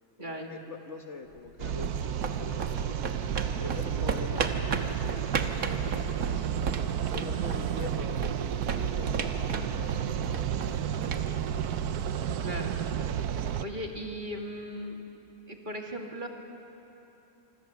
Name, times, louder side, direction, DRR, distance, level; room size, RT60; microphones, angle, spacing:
voice 1, 0.2-3.0 3.6-5.8 6.2-6.5 7.1-11.6, left 4 dB, 50° left, 5 dB, 1.4 m, -45 dB
sound 1, 1.4-12.2, right 5 dB, 65° right, 1.6 m, -36 dB
sound 2, 1.6-13.6, right 9 dB, 80° right, 1.3 m, -31 dB
voice 2, 12.4-12.7 13.6-15.0 15.5-16.3, equal, 30° right, 1 dB, 2.2 m, -37 dB
26.0 x 25.0 x 7.0 m, 3.0 s
omnidirectional pair, 1.6 m